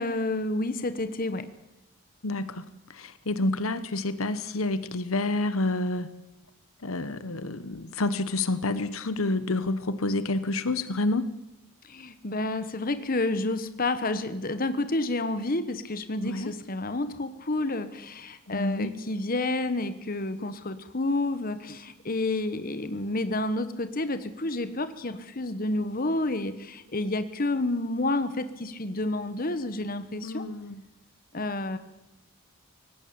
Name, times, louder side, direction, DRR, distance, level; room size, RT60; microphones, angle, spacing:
voice 1, 0.0-1.5 11.8-30.5 31.3-31.8, left 2 dB, 40° left, 11 dB, 1.2 m, -30 dB
voice 2, 2.2-2.6 2.9-6.1 6.8-11.3 16.2-16.5 18.5-18.9 30.2-30.8, left 2 dB, 70° left, 14 dB, 1.1 m, -28 dB
18.5 x 16.5 x 8.7 m, 0.91 s
head